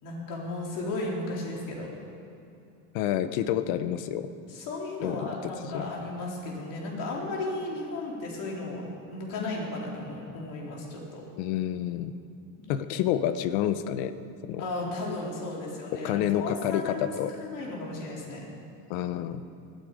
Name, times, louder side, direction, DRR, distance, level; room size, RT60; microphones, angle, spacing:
voice 1, 0.0-1.9 4.5-11.2 12.6-12.7 14.6-17.1 17.3-18.4, left 2 dB, 50° left, -2 dB, 4.3 m, -35 dB
voice 2, 2.9-4.3 5.0-5.3 5.7-5.9 11.4-12.1 12.7-14.1 14.4-14.6 16.0-17.3 18.9-19.4, left 11 dB, 75° left, 12 dB, 1.0 m, -28 dB
20.0 x 13.5 x 5.1 m, 2.7 s
cardioid pair, 145°, 41 cm